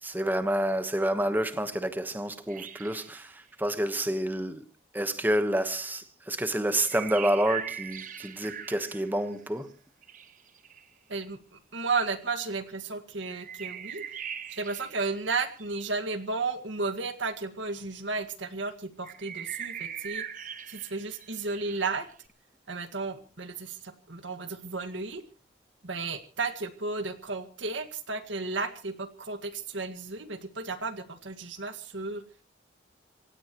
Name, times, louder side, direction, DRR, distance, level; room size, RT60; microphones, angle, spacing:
voice 1, 0.0-4.6 4.9-9.7, right 1 dB, 10° right, 1.2 m, -29 dB
sound 1, 2.5-3.3 6.7-9.4 10.0-10.9 13.3-15.9 19.0-22.1, right 8 dB, 40° right, 1.4 m, -41 dB
voice 2, 11.1-14.0 14.5-20.3 20.7-22.1 22.7-25.2 25.8-32.2, right 3 dB, 85° right, 1.9 m, -33 dB
27.5 x 16.5 x 3.1 m
head